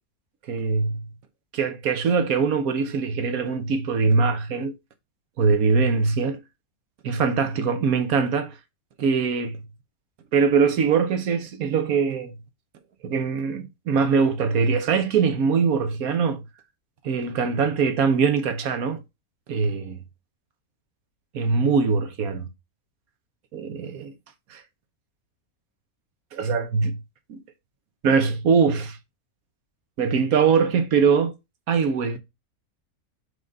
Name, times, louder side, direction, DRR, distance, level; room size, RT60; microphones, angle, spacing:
voice 1, 0.5-1.1 1.5-4.8 5.4-6.4 7.0-8.5 9.0-9.6 10.3-12.3 13.0-16.4 17.0-19.0 19.5-20.0 21.3-22.4 23.5-24.1 24.5-24.6 26.3-27.0 27.3-27.4 28.0-29.0 30.0-31.3 31.7-32.2, right 5 dB, 75° right, 1.4 m, -22 dB
4.9 x 4.0 x 5.3 m
omnidirectional pair, 1.5 m